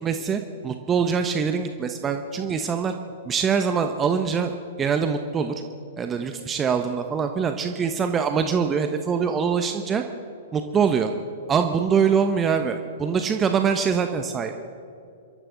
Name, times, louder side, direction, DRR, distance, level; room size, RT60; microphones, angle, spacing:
voice 1, 0.0-2.9 3.2-4.5 4.8-5.5 6.0-10.0 10.5-11.1 11.5-14.5, right 6 dB, 20° right, 7 dB, 1.0 m, -23 dB
27.0 x 13.5 x 4.0 m, 2.5 s
figure-of-eight pair, 110°, 0 cm